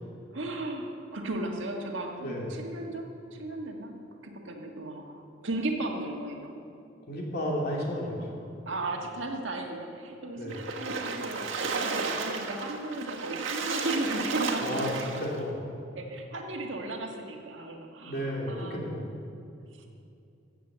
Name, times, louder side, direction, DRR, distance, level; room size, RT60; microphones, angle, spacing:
voice 1, 0.3-3.9 4.2-6.5 8.7-15.2 15.9-18.8, right 2 dB, 75° right, 2 dB, 1.7 m, -35 dB
voice 2, 2.2-2.6 7.1-8.3 10.3-10.6 14.6-15.6 18.0-19.2, equal, 55° left, -2 dB, 2.8 m, -33 dB
Splash splatter, 10.5-15.4, right 4 dB, 90° right, 1.5 m, -33 dB
14.5 x 8.3 x 7.4 m, 2.6 s
head